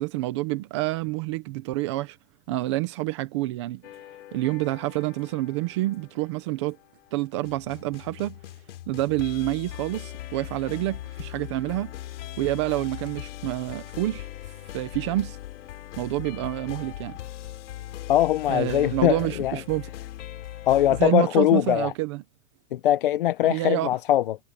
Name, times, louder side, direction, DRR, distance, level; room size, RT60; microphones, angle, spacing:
voice 1, 0.0-2.2 2.5-3.8 4.3-6.8 7.1-8.4 8.9-11.9 12.4-14.3 14.7-15.4 16.0-17.2 18.5-19.9 21.0-22.2 23.4-23.9, right 17 dB, 20° right, 0.7 m, -28 dB
sound 1, 3.8-21.1, left 14 dB, 55° left, 3.6 m, -40 dB
voice 2, 18.1-19.6 20.7-21.9 22.7-24.4, left 13 dB, 40° left, 0.6 m, -21 dB
supercardioid pair, 175°, 43 cm